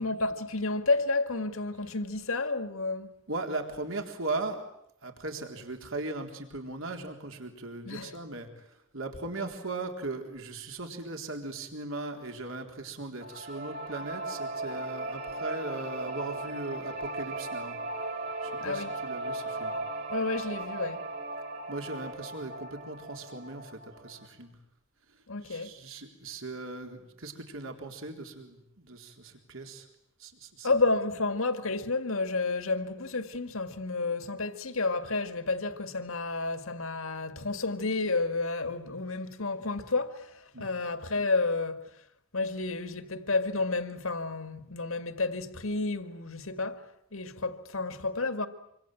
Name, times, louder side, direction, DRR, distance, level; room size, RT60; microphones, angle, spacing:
voice 1, 0.0-3.1 7.9-8.2 18.6-18.9 20.1-21.1 25.3-25.8 30.6-41.8 42.3-48.5, left 3 dB, 70° left, 2.0 m, -31 dB
voice 2, 3.3-4.7 5.0-18.1 18.4-19.7 21.7-24.5 25.4-29.9 30.2-30.7 40.5-40.7, right 2 dB, 65° right, 3.8 m, -38 dB
sound 1, 13.2-24.3, right 2 dB, 45° right, 4.2 m, -37 dB
26.0 x 25.0 x 9.1 m
head